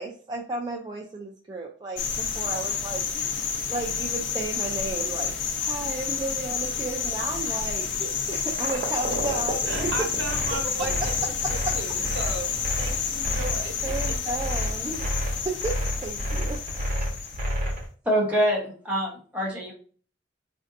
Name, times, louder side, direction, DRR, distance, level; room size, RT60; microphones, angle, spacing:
voice 1, 0.0-7.9 8.3-10.1 10.8-10.9 11.4-11.7 13.3-15.1 15.4-17.0, right 2 dB, 25° right, 0.4 m, -34 dB
sound 1, 2.0-17.7, left 6 dB, 80° left, 0.7 m, -30 dB
sound 2, 8.5-17.8, equal, 45° right, 0.9 m, -30 dB
voice 2, 9.7-14.1, right 2 dB, 75° right, 0.9 m, -36 dB
voice 3, 18.0-19.7, equal, 5° right, 1.0 m, -25 dB
4.2 x 2.5 x 2.6 m
head